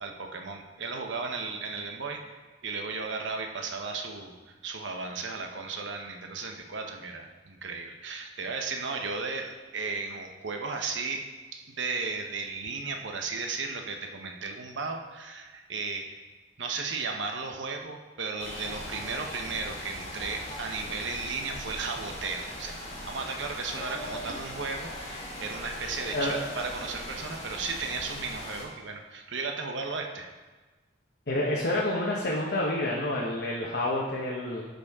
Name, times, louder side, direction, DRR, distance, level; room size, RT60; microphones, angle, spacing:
voice 1, 0.0-4.4 4.6-11.2 11.5-16.2 16.6-30.3, right 4 dB, 70° right, 3 dB, 0.9 m, -35 dB
sound 1, 18.4-28.6, left 1 dB, 30° left, 1.8 m, -40 dB
voice 2, 31.3-34.6, left 1 dB, 55° left, -3 dB, 1.0 m, -28 dB
11.5 x 5.3 x 3.6 m, 1.3 s
head